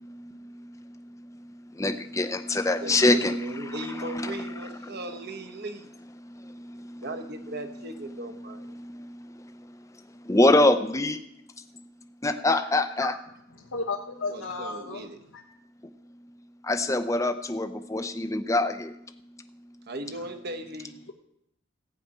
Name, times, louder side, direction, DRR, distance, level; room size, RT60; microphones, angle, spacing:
voice 1, 0.0-3.4 3.6-4.5 6.2-7.0 8.4-9.7 10.2-11.2 11.7-11.8 12.2-13.1 16.6-19.0, left 2 dB, 15° left, 9 dB, 0.7 m, -26 dB
voice 2, 2.8-5.9 7.0-8.8 14.3-15.2 19.9-21.0, right 2 dB, 50° right, 7 dB, 1.2 m, -37 dB
voice 3, 13.6-15.1 15.3-15.4, left 3 dB, 85° left, -2 dB, 1.4 m, -33 dB
15.0 x 5.8 x 8.9 m, 0.77 s
head